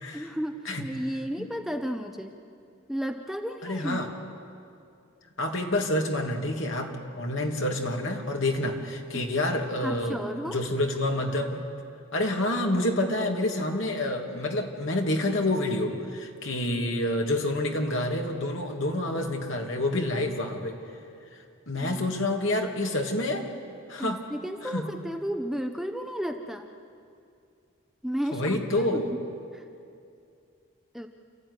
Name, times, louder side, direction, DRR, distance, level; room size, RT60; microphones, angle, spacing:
voice 1, 0.1-2.4 2.9-4.0 9.1-9.2 9.8-10.6 21.8-22.0 24.0-26.7 28.0-29.2 29.5-29.6 30.9-31.1, equal, ahead, 5 dB, 0.7 m, -33 dB
voice 2, 3.6-4.1 5.4-10.2 10.4-11.6 12.1-20.8 21.7-23.4 23.9-24.2 24.6-24.9 28.3-29.1, left 1 dB, 65° left, 2 dB, 2.5 m, -28 dB
29.0 x 14.0 x 9.8 m, 2.5 s
head